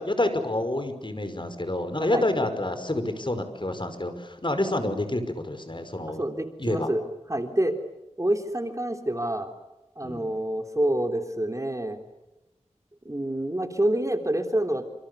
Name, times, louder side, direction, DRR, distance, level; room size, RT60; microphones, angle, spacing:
voice 1, 0.0-6.2 6.6-6.9 10.0-10.3, left 1 dB, 40° left, 9 dB, 5.3 m, -28 dB
voice 2, 6.2-7.0 7.3-7.7 8.2-9.5 10.0-12.0 13.0-14.8, right 1 dB, 25° right, 5 dB, 3.5 m, -27 dB
29.0 x 27.5 x 7.0 m, 0.99 s
wide cardioid pair, 50°, 12 cm